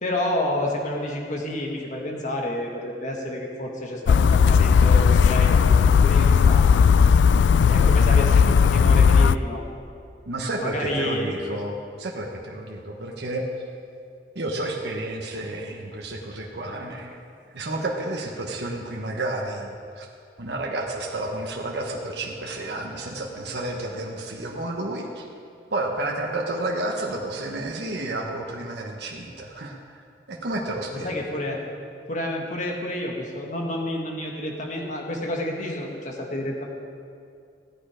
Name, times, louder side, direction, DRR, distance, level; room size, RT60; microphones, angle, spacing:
voice 1, 0.0-6.6 7.7-9.6 10.6-11.3 30.9-31.6 32.1-36.7, left 1 dB, 45° left, 0 dB, 1.8 m, -29 dB
sound 1, 4.1-9.3, left 6 dB, 90° left, 0.3 m, -16 dB
voice 2, 10.3-13.5 14.3-17.2 17.5-20.1 20.4-25.3 25.7-30.0 30.3-31.1, right 2 dB, 70° right, -1 dB, 1.1 m, -31 dB
15.5 x 9.0 x 5.0 m, 2.4 s
head